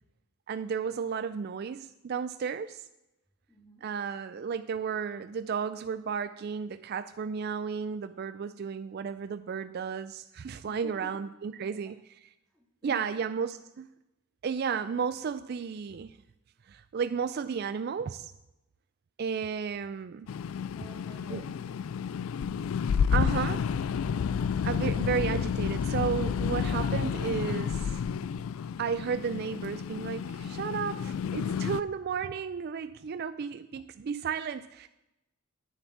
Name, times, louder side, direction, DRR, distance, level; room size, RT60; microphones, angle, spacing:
voice 1, 0.5-2.8 3.8-12.0 12.8-13.9 14.4-16.2 16.7-18.3 19.2-20.3 21.3-21.4 23.1-24.0 24.6-28.0 28.8-34.9, right 6 dB, 50° right, 12 dB, 0.3 m, -33 dB
voice 2, 3.5-3.9 10.7-11.1 11.7-11.9 12.5-13.3 14.7-14.8 20.7-21.8, left 1 dB, 5° left, -5 dB, 1.9 m, -51 dB
sound 1, 20.3-31.8, left 7 dB, 70° left, 0.3 m, -30 dB
9.5 x 7.0 x 7.2 m, 0.93 s
head